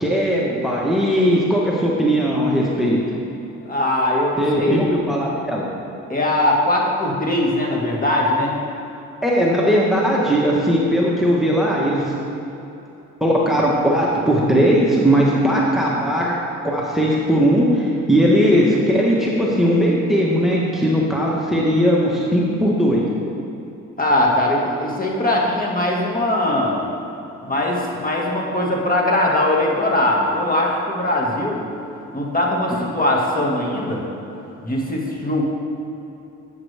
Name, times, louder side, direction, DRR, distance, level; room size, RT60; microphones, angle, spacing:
voice 1, 0.0-3.0 4.4-5.7 9.2-12.1 13.2-16.3 16.6-23.1, equal, ahead, -4 dB, 1.3 m, -18 dB
voice 2, 3.7-4.9 6.1-8.5 24.0-26.9 27.4-31.6 32.1-34.0 34.6-35.4, left 1 dB, 30° left, -2 dB, 1.9 m, -20 dB
11.0 x 8.4 x 3.5 m, 2.9 s
cardioid pair, 90°, 30 cm